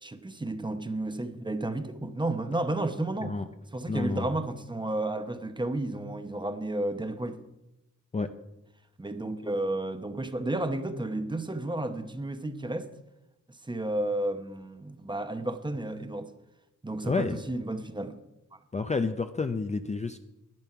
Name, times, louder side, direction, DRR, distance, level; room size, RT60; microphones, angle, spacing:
voice 1, 0.0-3.4 3.7-7.4 9.0-12.9 13.6-16.3 16.8-18.2, right 2 dB, 15° right, 0.9 m, -32 dB
voice 2, 3.9-4.3 8.1-8.3 17.0-17.4 18.7-20.2, left 4 dB, 20° left, 0.5 m, -29 dB
11.0 x 10.5 x 5.7 m
wide cardioid pair, 115°, 31 cm